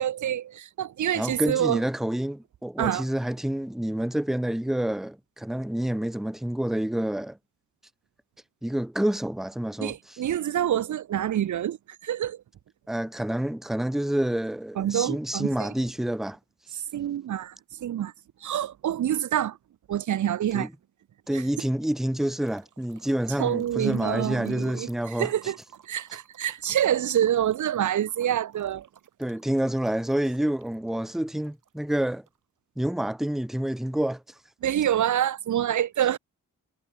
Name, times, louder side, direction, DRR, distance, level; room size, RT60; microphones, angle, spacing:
voice 1, 0.0-1.8 2.8-3.1 9.8-11.8 12.0-12.4 14.8-15.7 16.7-17.5 17.8-18.1 18.4-19.6 19.9-20.7 21.3-21.4 23.4-25.6 25.9-28.9 34.6-36.2, right 11 dB, 70° right, 0.7 m, -26 dB
voice 2, 1.1-7.4 8.6-10.2 12.9-16.4 20.5-20.7 21.3-25.3 29.2-32.2 32.8-34.2, right 1 dB, ahead, 0.8 m, -28 dB
sound 1, 22.3-32.4, right 8 dB, 85° right, 5.5 m, -55 dB
wide cardioid pair, 115°, 31 cm